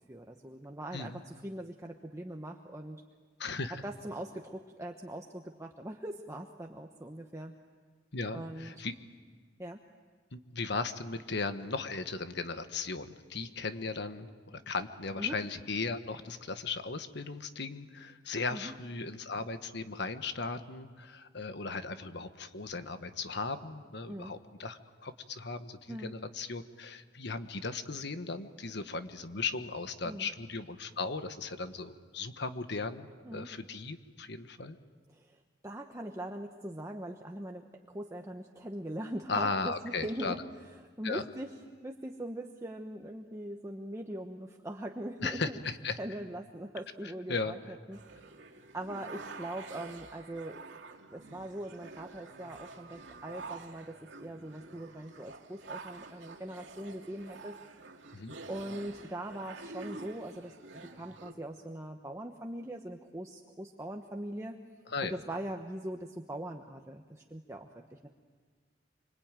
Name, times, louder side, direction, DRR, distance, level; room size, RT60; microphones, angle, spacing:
voice 1, 0.1-3.0 3.8-7.5 8.3-8.7 9.6-9.8 15.2-15.4 18.5-18.7 24.1-24.3 25.9-26.1 30.0-30.3 33.2-33.5 35.1-40.4 41.0-41.5 41.8-45.6 46.0-47.6 47.9-48.0 48.7-50.6 51.1-57.6 58.5-60.5 60.9-64.6 65.0-68.1, right 1 dB, 15° right, 3 dB, 1.1 m, -41 dB
voice 2, 3.4-3.8 8.1-8.9 10.3-34.8 39.3-40.3 41.0-41.2 45.2-46.0 47.0-47.5 58.1-58.3 64.9-65.2, left 4 dB, 65° left, 9 dB, 1.3 m, -37 dB
sound 1, 47.9-61.3, right 3 dB, 90° right, 2.3 m, -48 dB
25.5 x 25.5 x 9.1 m, 1.5 s
head